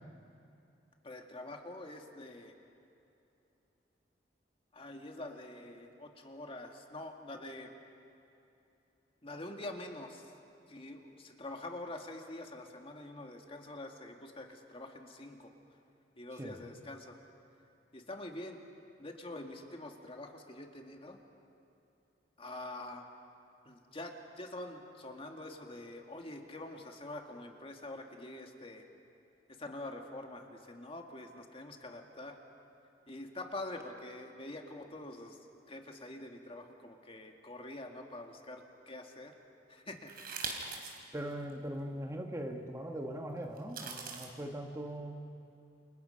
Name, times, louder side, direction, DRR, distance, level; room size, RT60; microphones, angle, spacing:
voice 1, 1.0-2.5 4.7-7.7 9.2-10.3 10.7-15.5 16.2-17.2 17.9-18.6 19.0-21.2 22.4-23.1 23.7-28.8 29.6-32.4 33.1-35.4 35.7-39.3 39.7-40.1, left 2 dB, 30° left, 3 dB, 2.1 m, -45 dB
sound 1, 40.1-41.0 41.5-41.6 43.6-44.3, right 5 dB, 60° right, 3.6 m, -41 dB
voice 2, 41.1-45.2, right 1 dB, 15° right, 3 dB, 1.6 m, -40 dB
29.0 x 28.5 x 5.7 m, 2.8 s
head